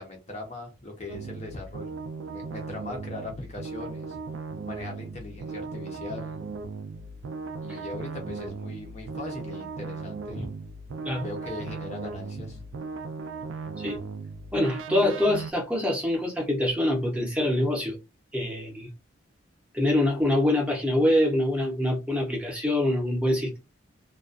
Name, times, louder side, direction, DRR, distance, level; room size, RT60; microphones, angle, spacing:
voice 1, 0.0-2.0 2.3-4.2 4.6-6.3 7.6-10.5 11.2-12.6, left 2 dB, 35° left, 0.6 m, -39 dB
sound 1, 1.1-15.5, right 4 dB, 75° right, 0.3 m, -37 dB
voice 2, 14.5-18.0 18.3-18.9 19.7-23.6, left 1 dB, 5° right, 0.7 m, -25 dB
2.3 x 2.2 x 2.4 m
head